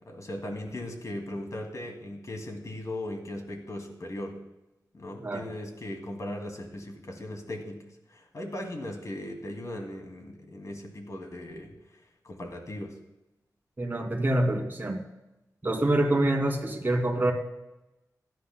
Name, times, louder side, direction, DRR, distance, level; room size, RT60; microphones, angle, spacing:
voice 1, 0.0-4.4 4.9-11.8 12.2-13.0, left 1 dB, 55° left, 3 dB, 2.4 m, -38 dB
voice 2, 13.8-15.0 15.6-17.3, right 1 dB, 30° right, 2 dB, 2.4 m, -26 dB
16.5 x 12.0 x 2.2 m, 0.93 s
wide cardioid pair, 80°, 7 cm